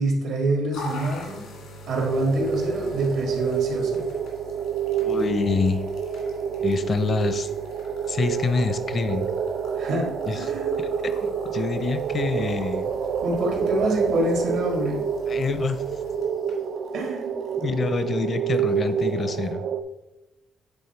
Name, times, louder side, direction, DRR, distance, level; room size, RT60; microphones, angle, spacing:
voice 1, 0.0-1.4 1.9-4.0 9.8-10.8 13.2-15.0 16.9-17.3, right 1 dB, 85° right, 1 dB, 1.9 m, -26 dB
sound 1, 0.7-19.5, left 1 dB, 85° left, 2.1 m, -44 dB
sound 2, 2.0-19.8, right 7 dB, 65° right, 0.4 m, -28 dB
voice 2, 5.0-5.8 6.6-7.5 8.1-9.3 10.3-10.4 10.8-12.9 15.3-15.8 17.6-19.6, left 4 dB, 45° left, 11 dB, 0.6 m, -26 dB
8.9 x 3.5 x 4.4 m, 1.0 s
cardioid pair, 90°, 0 cm